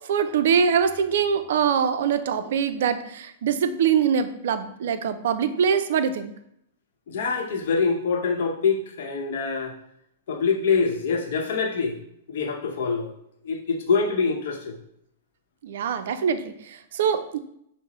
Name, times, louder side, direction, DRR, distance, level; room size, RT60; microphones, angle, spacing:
voice 1, 0.1-6.3 15.6-16.5 16.9-17.4, right 7 dB, 70° right, 10 dB, 0.4 m, -23 dB
voice 2, 7.1-9.7 10.3-11.9 12.3-13.1 13.4-14.7, left 5 dB, 65° left, 2 dB, 0.8 m, -25 dB
5.6 x 2.0 x 3.0 m, 0.73 s
hypercardioid pair, 125°, 0 cm